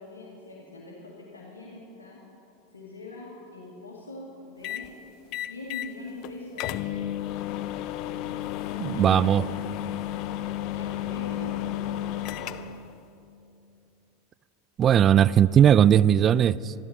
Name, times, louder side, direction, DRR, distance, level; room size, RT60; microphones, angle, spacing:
voice 1, 0.0-2.2 2.7-4.9 5.4-6.9 8.7-9.6 10.7-12.3, left 2 dB, 90° left, -4 dB, 2.0 m, -43 dB
sound 1, 4.6-4.9 5.3-5.9 6.2-6.3 6.6-12.9, left 12 dB, 50° left, 0.6 m, -32 dB
voice 2, 8.8-9.5 14.8-16.7, right 9 dB, 35° right, 20 dB, 0.3 m, -18 dB
13.5 x 12.5 x 7.1 m, 2.8 s
hypercardioid pair, 90°, 0 cm